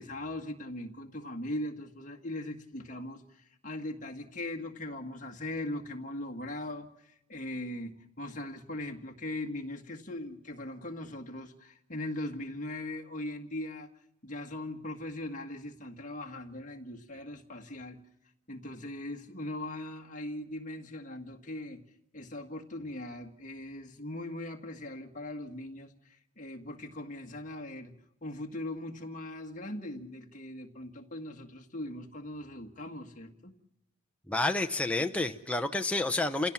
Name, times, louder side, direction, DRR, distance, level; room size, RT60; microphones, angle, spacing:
voice 1, 0.0-13.9 14.2-18.0 18.5-21.8 22.1-27.9 28.2-33.5, left 1 dB, 35° left, 3 dB, 1.8 m, -40 dB
voice 2, 34.3-36.5, left 2 dB, 5° left, 5 dB, 0.7 m, -29 dB
28.5 x 16.5 x 7.3 m, 0.85 s
head